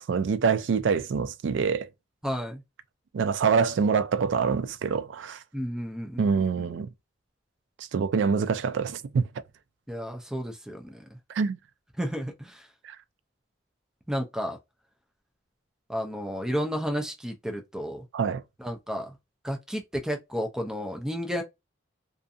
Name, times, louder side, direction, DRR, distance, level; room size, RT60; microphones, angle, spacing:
voice 1, 0.1-1.9 3.1-5.4 6.2-6.9 7.8-9.3 11.3-11.6 12.8-13.0 18.1-18.4, right 5 dB, 70° right, 0.3 m, -25 dB
voice 2, 2.2-2.6 5.5-6.3 6.6-6.7 9.9-11.0 12.0-12.6 14.1-14.6 15.9-18.0 18.6-19.1 19.4-21.4, equal, 5° right, 0.4 m, -32 dB
2.5 x 2.4 x 2.5 m
head